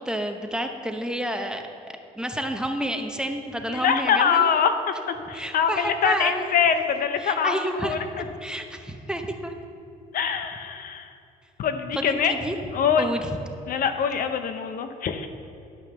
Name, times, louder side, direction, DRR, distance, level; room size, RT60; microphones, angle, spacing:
voice 1, 0.1-1.6 2.2-4.5 5.3-6.5 7.2-9.5 11.9-12.6 13.0-13.3, equal, 5° right, 4 dB, 0.8 m, -30 dB
voice 2, 3.7-8.2 10.1-11.1 11.6-12.3 12.7-13.1 13.7-15.3, left 7 dB, 55° left, 8 dB, 0.7 m, -24 dB
11.0 x 5.7 x 7.0 m, 2.7 s
cardioid pair, 110°, 17 cm